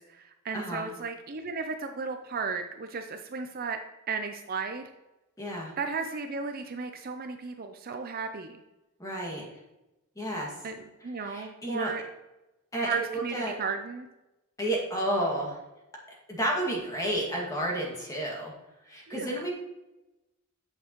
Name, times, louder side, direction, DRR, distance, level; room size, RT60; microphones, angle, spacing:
voice 1, 0.0-3.8 4.1-4.8 5.8-8.6 10.6-12.0 12.8-14.1 19.1-19.5, right 4 dB, 40° right, 6 dB, 0.5 m, -35 dB
voice 2, 0.5-0.9 5.4-5.7 9.0-9.5 10.2-10.5 11.2-11.9 12.7-13.6 14.6-15.6 16.3-18.5 18.9-19.5, right 1 dB, 15° left, -2 dB, 2.0 m, -31 dB
8.8 x 7.0 x 3.0 m, 0.99 s
head